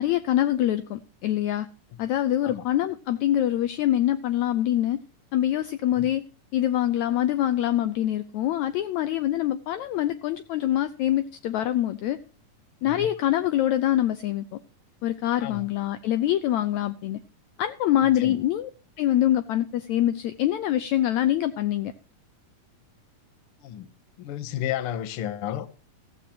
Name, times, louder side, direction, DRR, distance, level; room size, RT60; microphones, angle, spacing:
voice 1, 0.0-1.7 2.0-5.0 5.3-6.2 6.5-12.2 12.8-14.6 15.0-17.2 17.6-18.7 19.0-21.9, left 12 dB, 75° left, 1.8 m, -24 dB
voice 2, 24.2-25.7, left 11 dB, 60° left, 1.6 m, -32 dB
15.0 x 15.0 x 2.9 m
omnidirectional pair, 3.8 m